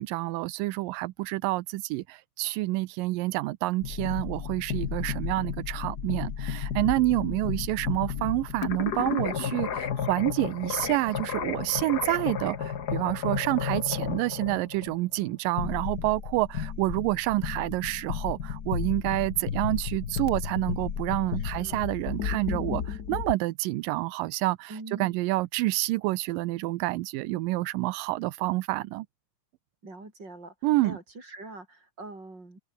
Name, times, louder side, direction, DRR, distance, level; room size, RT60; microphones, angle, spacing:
voice 1, 0.0-29.1 30.6-31.0, right 19 dB, 90° right, 2.3 m, -28 dB
sound 1, 3.8-23.3, left 7 dB, 55° left, 1.0 m, -33 dB
voice 2, 7.1-7.5 21.6-21.8 24.7-25.2 29.8-30.5 30.8-32.6, right 2 dB, 30° right, 7.5 m, -43 dB
open air
omnidirectional pair, 3.9 m